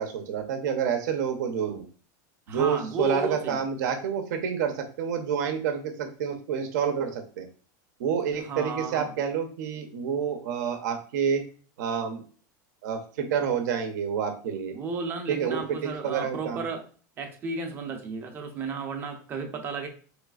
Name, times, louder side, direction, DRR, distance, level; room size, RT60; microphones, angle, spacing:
voice 1, 0.0-1.8 2.5-7.5 8.0-11.4 11.8-12.2 12.8-14.7 15.3-16.6, right 7 dB, 70° right, 6 dB, 0.6 m, -28 dB
voice 2, 2.5-3.6 8.4-9.1 14.7-16.8 17.2-19.9, right 4 dB, 20° right, 5 dB, 0.5 m, -33 dB
4.1 x 3.1 x 2.3 m, 0.40 s
supercardioid pair, 170°, 10 cm